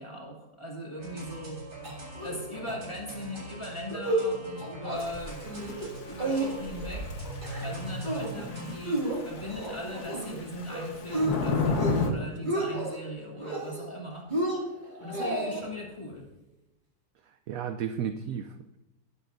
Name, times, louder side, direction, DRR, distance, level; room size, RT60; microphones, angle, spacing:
voice 1, 0.0-1.6 2.2-5.4 6.0-7.2 7.6-14.3 15.0-16.3, equal, 15° left, -3 dB, 2.5 m, -39 dB
sound 1, 1.0-8.7, right 1 dB, 55° right, 4.6 m, -41 dB
sound 2, 1.8-2.4 2.7-2.8 3.1-3.4 3.8-4.3 4.6-5.0 5.4-5.9 6.2-6.9 7.2-7.7 8.0-8.4 8.9-10.4 10.7-11.3 11.7-12.1 12.3-13.0 13.4-14.0 14.3-15.6, right 2 dB, 25° right, 2.4 m, -31 dB
Thunder / Rain, 5.0-12.1, left 4 dB, 60° left, 1.6 m, -34 dB
voice 2, 17.3-18.8, right 8 dB, 75° right, 9 dB, 0.8 m, -34 dB
19.5 x 8.3 x 2.6 m, 0.97 s
omnidirectional pair, 2.0 m